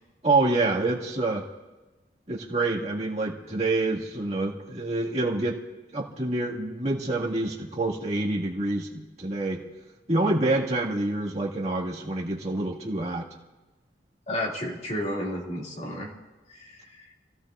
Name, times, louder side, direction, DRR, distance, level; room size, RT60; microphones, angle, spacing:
voice 1, 0.2-1.4 2.3-5.6 5.9-9.6 10.1-13.3, right 2 dB, 35° right, -4 dB, 1.9 m, -27 dB
voice 2, 14.3-16.1 16.5-17.1, left 1 dB, 40° left, -2 dB, 2.4 m, -32 dB
26.5 x 16.5 x 2.5 m, 1.1 s
head